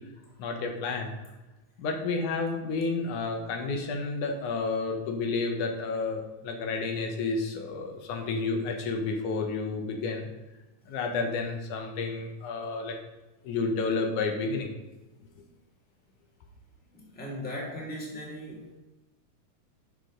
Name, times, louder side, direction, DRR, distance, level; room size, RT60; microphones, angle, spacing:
voice 1, 0.4-1.2 1.8-10.3 10.9-13.0 13.4-14.7, left 4 dB, 85° left, 3 dB, 2.6 m, -30 dB
voice 2, 16.9-18.7, equal, 5° left, -4 dB, 1.6 m, -38 dB
12.0 x 5.2 x 3.8 m, 1.1 s
omnidirectional pair, 3.4 m